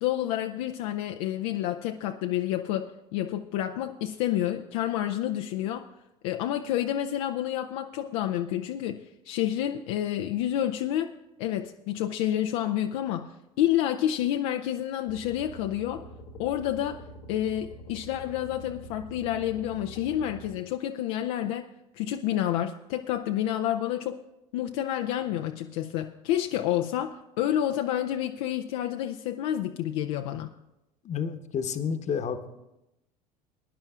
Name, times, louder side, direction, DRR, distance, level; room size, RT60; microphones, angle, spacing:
voice 1, 0.0-5.9 6.2-11.1 11.4-16.1 16.4-17.0 17.3-21.6 21.9-24.2 24.5-30.5, left 12 dB, 60° left, 6 dB, 0.5 m, -29 dB
sound 1, 15.1-20.6, equal, 80° left, 1.2 m, -45 dB
voice 2, 31.0-32.5, left 6 dB, 35° left, 8 dB, 1.1 m, -30 dB
22.0 x 10.5 x 2.4 m, 0.90 s
hypercardioid pair, 70°, 20 cm